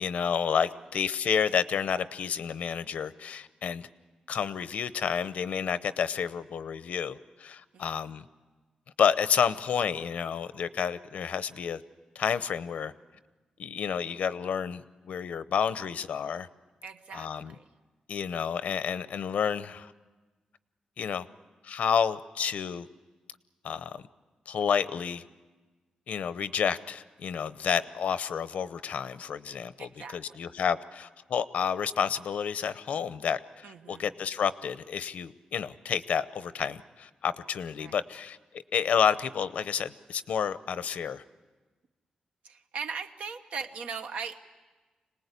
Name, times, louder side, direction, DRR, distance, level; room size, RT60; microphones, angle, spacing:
voice 1, 0.0-3.9 4.3-8.2 9.0-11.8 12.1-12.9 13.6-16.5 17.1-17.5 18.1-19.9 21.0-21.3 21.6-22.9 23.6-24.0 24.5-25.2 26.1-38.4 38.7-41.2, left 7 dB, 80° left, 14 dB, 0.7 m, -30 dB
voice 2, 16.8-17.6 29.5-30.4 33.6-34.1 37.8-38.0 42.4-44.5, right 5 dB, 75° right, 7 dB, 1.2 m, -40 dB
26.5 x 19.5 x 8.3 m, 1.3 s
wide cardioid pair, 125°, 2 cm